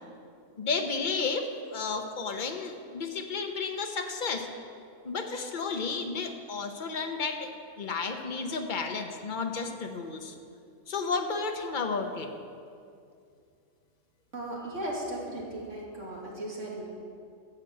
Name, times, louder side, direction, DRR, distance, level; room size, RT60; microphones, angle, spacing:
voice 1, 0.6-4.5 5.0-7.5 7.8-10.3 10.9-12.3, left 4 dB, 45° left, 4 dB, 1.1 m, -32 dB
voice 2, 14.3-16.8, right 1 dB, 85° right, -4 dB, 2.9 m, -36 dB
13.0 x 7.3 x 7.6 m, 2.4 s
omnidirectional pair, 1.2 m